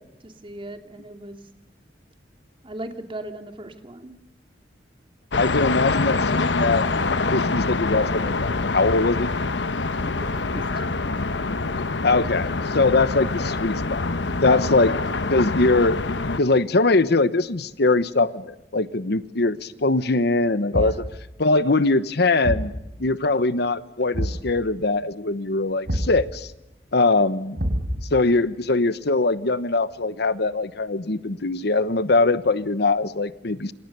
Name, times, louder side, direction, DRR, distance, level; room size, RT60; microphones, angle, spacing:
voice 1, 0.2-1.4 2.6-4.1 10.0-11.1 11.7-11.9 14.4-14.7 20.7-21.0, right 1 dB, 30° right, 6 dB, 2.7 m, -38 dB
sound 1, 5.3-16.4, left 3 dB, 85° left, 1.2 m, -25 dB
voice 2, 5.4-6.8 7.3-9.3 12.0-14.1 14.4-14.9 15.3-16.0 16.4-21.0 21.4-22.7 23.0-26.5 26.9-27.6 28.1-33.7, left 3 dB, 65° left, 15 dB, 1.1 m, -22 dB
Thump thud, 20.7-21.2 22.4-22.8 24.1-24.5 25.9-26.2 27.6-28.2, equal, 70° right, 4.5 m, -26 dB
27.5 x 27.5 x 6.9 m, 0.89 s
head